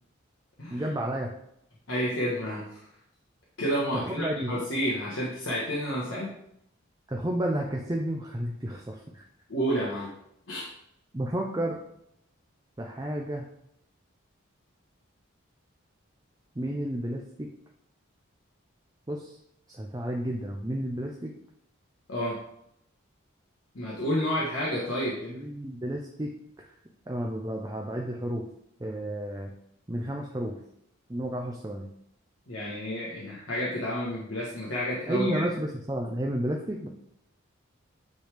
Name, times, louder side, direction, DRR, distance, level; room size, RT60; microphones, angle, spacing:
voice 1, 0.7-1.3 3.9-4.5 7.1-9.2 11.1-11.8 12.8-13.5 16.6-17.5 19.1-19.3 19.7-21.3 25.3-26.7 27.1-28.5 28.8-29.5 29.9-30.6 31.1-31.9 35.1-36.9, right 1 dB, 20° right, 0 dB, 0.5 m, -31 dB
voice 2, 1.9-2.7 3.6-6.3 9.5-10.1 10.5-10.7 22.1-22.4 23.7-25.5 32.5-35.4, equal, 70° left, -5 dB, 1.2 m, -30 dB
8.9 x 3.4 x 3.4 m, 0.74 s
head